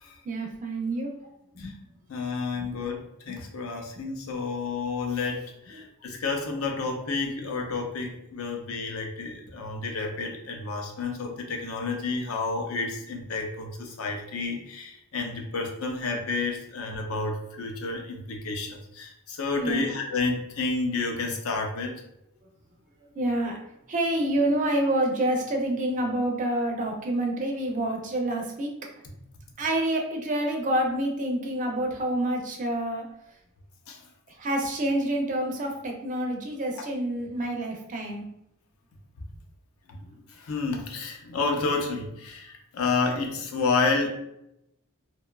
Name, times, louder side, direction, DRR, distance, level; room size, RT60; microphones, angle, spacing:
voice 1, 0.3-1.1 1.6-1.7 19.5-19.9 23.2-23.6 23.9-28.7 29.6-33.0 34.4-38.3, right 1 dB, 35° right, 1 dB, 0.5 m, -27 dB
voice 2, 2.1-21.9 33.9-34.0 39.9-44.1, left 4 dB, 70° left, 3 dB, 0.5 m, -30 dB
2.6 x 2.2 x 2.2 m, 0.81 s
head